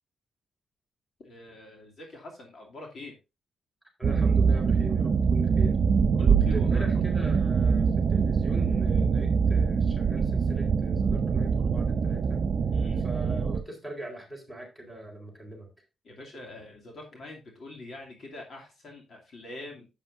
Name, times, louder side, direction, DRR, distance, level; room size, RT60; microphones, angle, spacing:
voice 1, 1.2-3.1 6.2-6.9 7.2-7.3 12.7-13.0 16.0-19.9, left 2 dB, 50° left, 0 dB, 2.6 m, -44 dB
voice 2, 4.0-5.8 6.3-12.4 13.0-15.7, right 1 dB, 5° left, 2 dB, 4.1 m, -41 dB
sound 1, 4.0-13.6, right 5 dB, 45° right, 0.7 m, -24 dB
11.0 x 8.9 x 2.6 m, 0.27 s
wide cardioid pair, 145°, 0 cm